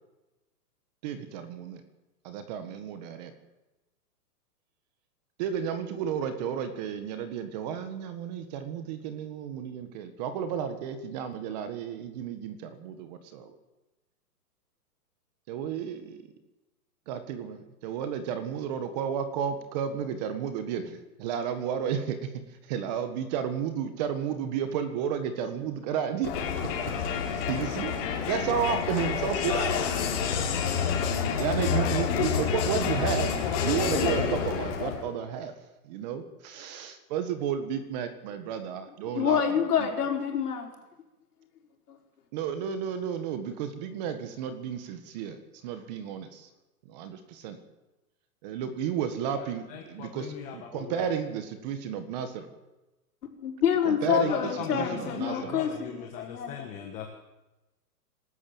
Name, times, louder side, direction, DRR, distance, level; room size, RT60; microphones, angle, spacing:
voice 1, 1.0-1.8 2.2-3.3 5.4-13.5 15.5-16.2 17.1-22.3 22.7-26.3 27.3-29.7 31.4-33.3 33.6-35.5 35.8-39.4 39.8-39.9 42.3-45.4 45.6-46.5 46.8-47.6 48.4-52.5 53.8-55.6, right 8 dB, 25° right, 9 dB, 1.6 m, -32 dB
Crowd, 26.2-35.1, left 6 dB, 35° left, 4.4 m, -28 dB
voice 2, 39.1-40.7 41.9-42.0 53.4-56.7, left 8 dB, 70° left, 2 dB, 5.4 m, -27 dB
voice 3, 49.4-51.1 54.2-57.1, left 8 dB, 15° left, 3 dB, 1.4 m, -39 dB
25.5 x 13.0 x 7.9 m, 1.0 s
hypercardioid pair, 165°, 48 cm